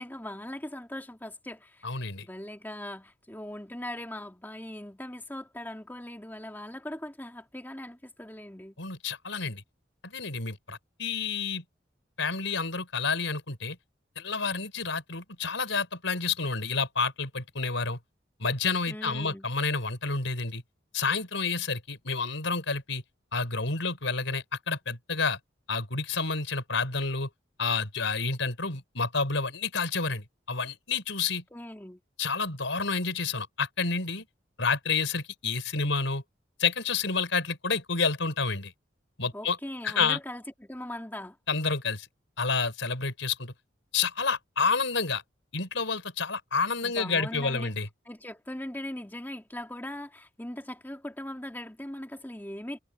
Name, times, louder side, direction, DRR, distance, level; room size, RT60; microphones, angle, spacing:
voice 1, 0.0-8.8 18.9-19.5 31.5-32.0 39.3-41.4 46.8-47.7 48.1-52.8, left 1 dB, 10° left, 2.4 m, -40 dB
voice 2, 1.8-2.2 8.8-9.6 10.0-11.6 12.2-13.8 14.2-18.0 18.4-20.6 20.9-23.0 23.3-25.4 25.7-27.3 27.6-31.4 32.2-34.2 34.6-36.2 36.6-38.7 39.2-39.6 39.8-40.2 41.5-42.1 42.4-43.5 43.9-45.2 45.5-47.9, left 4 dB, 85° left, 4.8 m, -29 dB
head